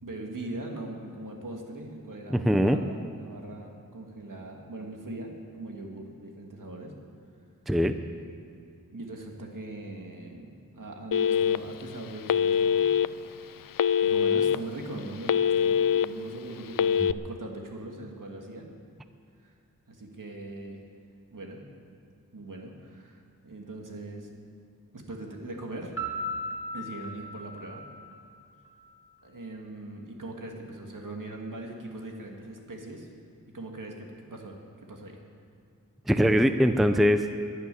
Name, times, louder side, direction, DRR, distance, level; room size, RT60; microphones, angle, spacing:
voice 1, 0.0-6.9 8.9-12.9 14.0-18.7 19.4-19.5 19.9-20.8 21.3-21.6 22.3-24.3 24.9-25.9 26.7-27.8 29.2-33.1 33.5-34.6 34.9-35.2, right 2 dB, 65° right, 1 dB, 2.4 m, -40 dB
voice 2, 2.3-2.8 7.7-8.0 17.0-17.1 36.1-37.3, equal, ahead, 8 dB, 0.6 m, -22 dB
Telephone, 11.1-11.8 12.3-13.1 13.8-14.5 15.0-16.0 16.7-17.1, left 8 dB, 70° left, 0.5 m, -23 dB
Piano, 26.0-28.8, equal, 35° left, 2.0 m, -36 dB
12.5 x 11.5 x 9.9 m, 2.4 s
wide cardioid pair, 90°, 34 cm